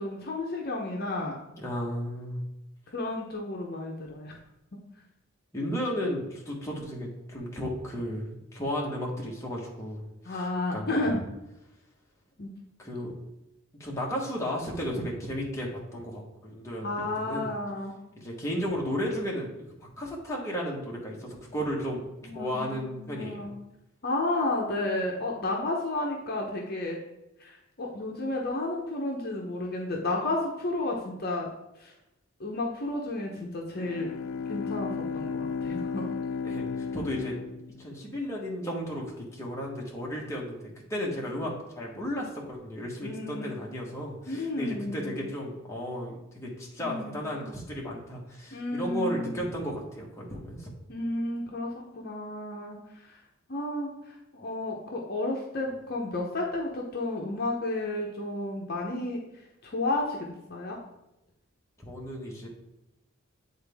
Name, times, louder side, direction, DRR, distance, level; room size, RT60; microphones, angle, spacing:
voice 1, 0.0-1.4 2.9-4.3 10.2-11.2 12.4-12.5 16.8-17.9 22.2-23.5 24.0-27.0 27.4-31.5 31.8-31.9 32.4-34.1 34.5-36.0 41.2-41.3 43.0-43.5 44.3-45.2 46.8-47.4 48.5-49.5 50.9-53.2 53.5-60.2 60.5-60.8, left 2 dB, 45° left, -1 dB, 0.8 m, -32 dB
voice 2, 1.6-2.4 5.5-11.0 12.8-13.1 13.7-17.5 18.1-19.5 19.8-23.5 36.4-37.4 37.8-40.6 40.9-50.7 61.8-62.5, equal, 15° left, -3 dB, 1.3 m, -34 dB
Bowed string instrument, 33.7-38.3, left 5 dB, 80° left, 0.4 m, -34 dB
8.9 x 4.0 x 3.5 m, 0.93 s
head